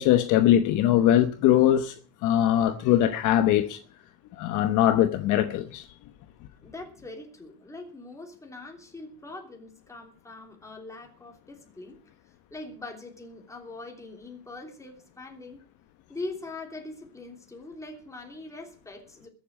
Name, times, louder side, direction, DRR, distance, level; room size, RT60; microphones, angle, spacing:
voice 1, 0.0-1.9 2.2-3.8 4.4-5.8, left 11 dB, 55° left, 1.0 m, -21 dB
voice 2, 6.6-12.0 12.3-15.6 16.1-19.3, left 2 dB, 10° left, 3.1 m, -42 dB
21.0 x 7.4 x 6.4 m
cardioid pair, 150°, 37 cm